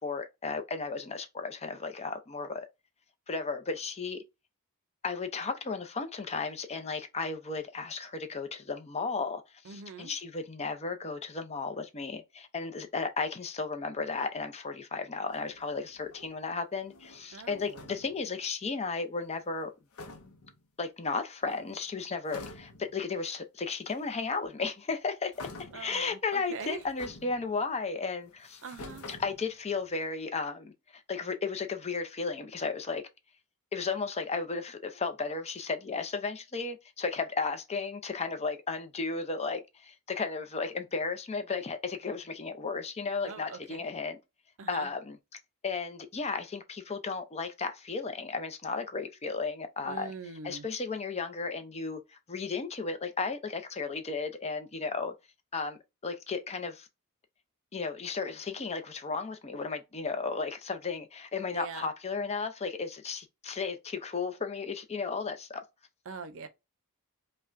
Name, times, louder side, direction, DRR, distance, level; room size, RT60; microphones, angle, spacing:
voice 1, 0.0-2.7 3.3-4.2 5.0-19.7 20.8-25.3 25.6-28.6 29.1-33.0 33.7-44.2 44.7-45.2 45.6-50.1 50.4-52.0 52.3-55.1 55.5-56.9 57.7-65.6, left 4 dB, 30° left, 0.5 m, -34 dB
voice 2, 9.7-10.1 17.3-17.9 25.7-26.8 28.6-29.1 43.2-43.8 44.6-44.9 49.8-50.7 61.5-61.9 66.1-66.5, right 5 dB, 60° right, 0.6 m, -42 dB
sound 1, 15.3-16.5 16.8-18.3 19.6-19.7 19.9-20.6 21.4-21.9 22.3-23.0 23.9-24.0 25.3-26.0 26.5-27.8 28.3-29.9, left 2 dB, 70° left, 0.6 m, -48 dB
5.2 x 2.2 x 2.5 m
head